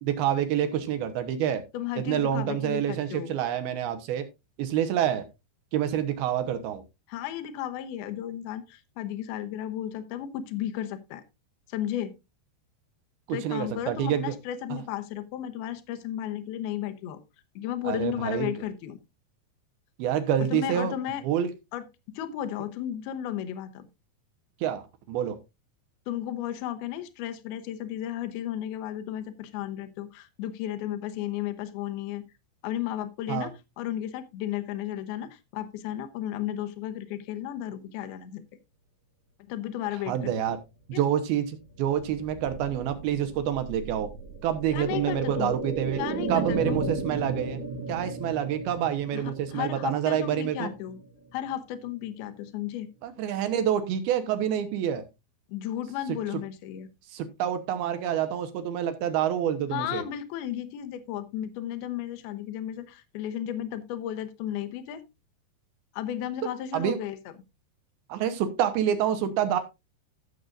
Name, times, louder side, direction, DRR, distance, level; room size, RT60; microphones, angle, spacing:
voice 1, 0.1-1.6 2.0-4.2 4.6-5.2 5.7-6.8 13.3-14.4 14.7-14.8 17.8-18.5 20.0-20.9 21.2-21.5 24.6-25.4 33.3-33.5 40.1-40.6 40.9-44.1 44.4-46.0 46.3-47.6 47.9-50.7 53.0-55.0 57.1-60.0 66.7-67.0 68.1-69.6, right 10 dB, 75° right, 10 dB, 2.6 m, -27 dB
voice 2, 1.7-3.3 7.1-11.2 11.7-12.1 13.3-17.2 17.6-19.0 20.5-21.2 21.7-21.8 22.1-23.9 26.1-32.2 32.6-38.4 39.5-40.6 40.9-41.0 44.7-45.5 46.0-46.8 49.1-49.2 49.5-51.0 51.3-52.9 55.5-56.9 59.7-65.0 65.9-67.2, left 11 dB, 75° left, 9 dB, 2.6 m, -34 dB
sound 1, 41.7-51.5 51.8-51.9, right 3 dB, 90° right, 5.9 m, -35 dB
15.5 x 6.6 x 2.5 m, 0.24 s
omnidirectional pair, 5.1 m